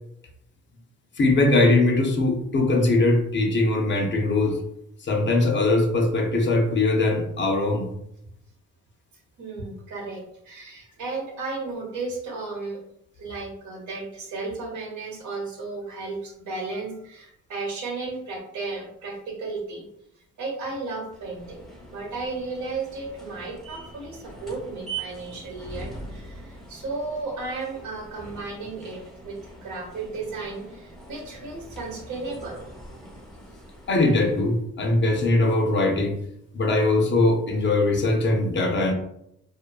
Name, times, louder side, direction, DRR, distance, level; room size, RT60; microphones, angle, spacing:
voice 1, 1.2-4.6 5.0-7.9 33.9-36.2 36.5-38.9, left 2 dB, 40° left, 3 dB, 0.5 m, -21 dB
voice 2, 9.4-12.8 13.2-19.9 20.2-32.6, right 3 dB, 70° right, -1 dB, 1.0 m, -34 dB
sound 1, 21.1-34.6, right 3 dB, ahead, 0.7 m, -43 dB
2.5 x 2.3 x 2.3 m, 0.78 s
cardioid pair, 90°, 30 cm